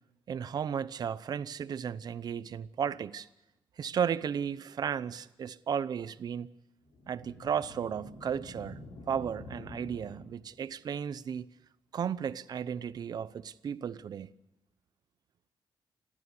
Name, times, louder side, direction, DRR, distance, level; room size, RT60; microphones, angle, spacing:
voice 1, 0.3-3.3 3.8-6.5 7.1-11.5 11.9-14.3, right 8 dB, 50° right, 0.8 m, -34 dB
sound 1, 6.9-10.7, left 2 dB, 70° left, 5.2 m, -48 dB
30.0 x 12.0 x 8.3 m
wide cardioid pair, 145°, 9 cm